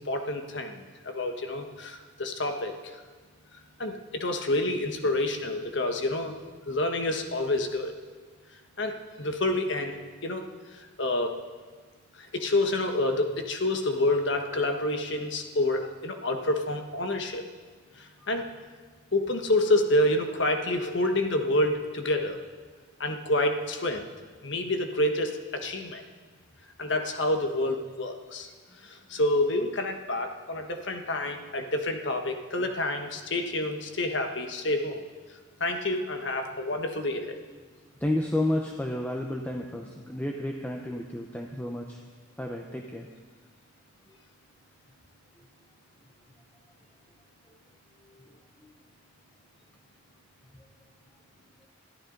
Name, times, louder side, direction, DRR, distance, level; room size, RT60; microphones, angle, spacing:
voice 1, 0.0-3.0 3.8-6.3 6.6-7.9 8.8-11.4 12.2-17.5 18.0-18.5 19.1-22.4 23.0-24.1 24.4-26.0 26.8-28.5 28.8-35.0 35.6-37.4, left 1 dB, 60° left, 5 dB, 1.3 m, -28 dB
voice 2, 38.0-42.0 42.4-43.1 44.1-44.2 45.4-45.5 47.5-47.6 48.0-48.7 50.5-50.7 51.6-51.7, left 1 dB, 10° left, 1 dB, 0.8 m, -32 dB
21.5 x 13.5 x 4.0 m, 1.5 s
head